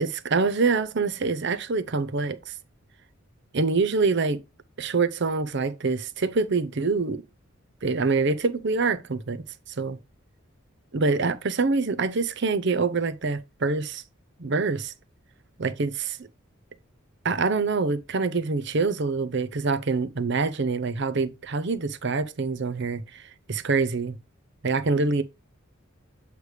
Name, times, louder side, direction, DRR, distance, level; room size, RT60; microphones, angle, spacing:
voice 1, 0.0-2.5 3.5-4.4 4.8-7.2 7.8-9.4 9.8-10.0 10.9-14.0 14.4-14.9 15.6-16.2 17.2-24.2 24.6-25.2, right 4 dB, 55° right, 0.7 m, -25 dB
8.1 x 3.3 x 4.8 m
head